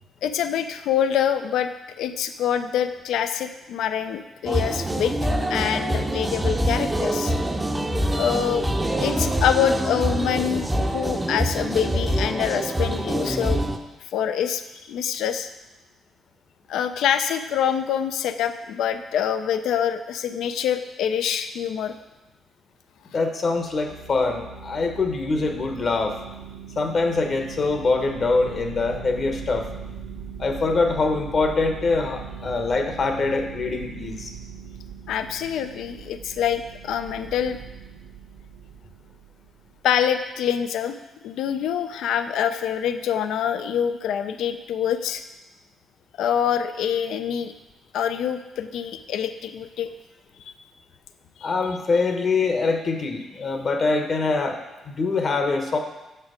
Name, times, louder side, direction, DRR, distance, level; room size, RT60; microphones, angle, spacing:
voice 1, 0.2-1.7 2.0-7.3 8.2-8.7 9.0-13.6 14.1-14.6 14.9-15.5 16.7-21.9 35.1-37.6 39.8-41.0 41.2-45.2 46.2-47.5 47.9-49.9 50.4-50.5, left 9 dB, 75° left, 10 dB, 0.4 m, -25 dB
sound 1, 4.5-13.8, right 1 dB, 15° right, 0.6 m, -25 dB
voice 2, 23.1-26.2 26.8-29.7 30.4-34.3 51.4-54.6 54.9-55.8, left 3 dB, 50° left, 4 dB, 0.9 m, -24 dB
sound 2, 23.5-39.8, right 6 dB, 80° right, 0.6 m, -40 dB
5.9 x 4.5 x 4.9 m, 1.0 s
supercardioid pair, 60°, 0 cm